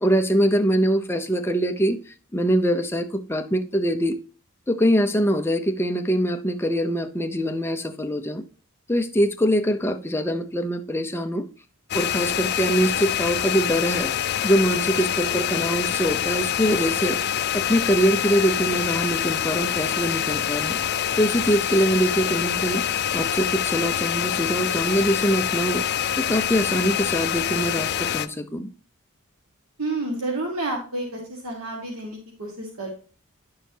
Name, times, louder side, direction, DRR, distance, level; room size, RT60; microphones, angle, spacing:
voice 1, 0.0-2.0 2.3-4.2 4.7-8.4 8.9-11.5 11.9-14.1 14.4-17.2 17.5-20.8 21.2-22.8 23.1-28.7, equal, 10° left, 0.6 m, -23 dB
sound 1, 11.9-28.3, left 10 dB, 50° left, 0.4 m, -25 dB
voice 2, 29.8-32.9, right 2 dB, 80° right, 1.7 m, -30 dB
10.0 x 6.3 x 2.8 m
head